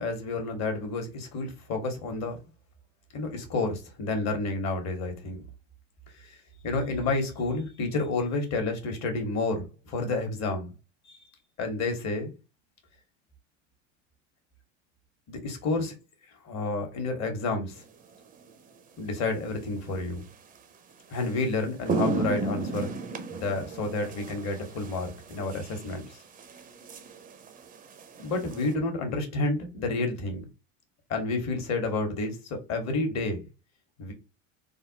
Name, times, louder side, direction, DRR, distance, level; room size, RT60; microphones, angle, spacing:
voice 1, 0.0-2.4 3.1-5.4 6.2-6.4 6.6-10.7 11.1-11.2 11.6-12.3 15.3-15.9 16.4-17.8 19.0-20.2 21.1-22.9 23.3-26.2 28.2-30.5 31.1-33.4 34.0-34.1, left 3 dB, 45° left, 1.2 m, -30 dB
sound 1, 18.2-18.4 20.6-20.7 21.1-21.3 21.6-28.8, right 3 dB, 20° right, 0.5 m, -34 dB
3.4 x 2.1 x 2.7 m
hypercardioid pair, 80°, 37 cm